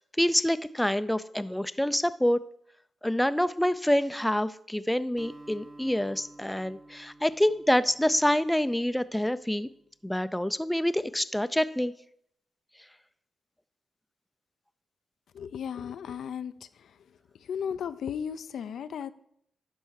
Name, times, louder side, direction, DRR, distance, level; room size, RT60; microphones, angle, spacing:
voice 1, 0.0-2.4 3.0-9.7 10.0-11.9, left 1 dB, 5° left, 13 dB, 0.4 m, -26 dB
Acoustic guitar, 5.2-9.7, right 2 dB, 40° right, 1.2 m, -52 dB
voice 2, 15.3-17.0 17.4-19.1, left 8 dB, 80° left, 12 dB, 0.4 m, -35 dB
11.0 x 4.5 x 6.3 m, 0.71 s
cardioid pair, 80°, 0 cm